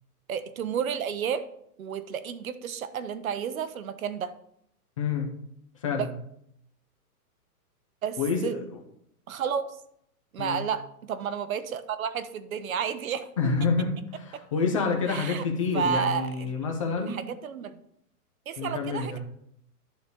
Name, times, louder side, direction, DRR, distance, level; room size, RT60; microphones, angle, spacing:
voice 1, 0.3-1.5 1.8-4.3 5.8-6.1 8.0-8.6 9.3-9.8 10.3-13.5 15.1-15.4 15.7-16.5 17.0-17.8 18.5-19.2, right 7 dB, 60° right, 12 dB, 1.0 m, -31 dB
voice 2, 5.0-5.3 5.8-6.1 8.2-8.6 10.4-10.6 13.4-17.2 18.6-19.2, left 4 dB, 20° left, 2 dB, 0.7 m, -28 dB
11.0 x 4.1 x 6.9 m, 0.72 s
hypercardioid pair, 175°, 46 cm